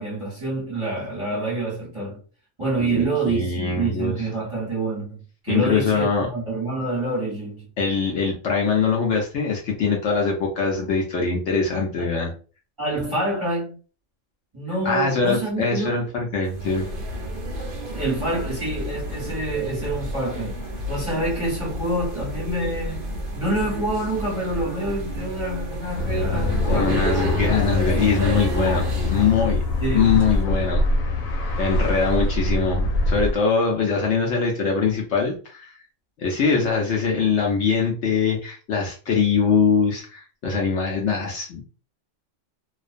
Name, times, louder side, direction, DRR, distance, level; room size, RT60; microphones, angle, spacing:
voice 1, 0.0-2.2 2.6-7.7 12.0-12.2 12.8-13.7 14.5-16.0 17.9-20.6 20.9-23.1 23.4-27.0 29.8-30.2, right 2 dB, 25° right, 1.0 m, -27 dB
voice 2, 2.7-4.1 5.5-6.3 7.8-12.3 14.8-16.9 26.7-29.6 29.9-31.2 31.6-35.7 36.2-41.6, left 5 dB, 65° left, 0.8 m, -22 dB
sound 1, 16.5-29.4, right 1 dB, 55° right, 0.6 m, -30 dB
sound 2, 26.0-33.3, left 2 dB, 85° left, 1.1 m, -24 dB
2.4 x 2.1 x 2.4 m
omnidirectional pair, 1.4 m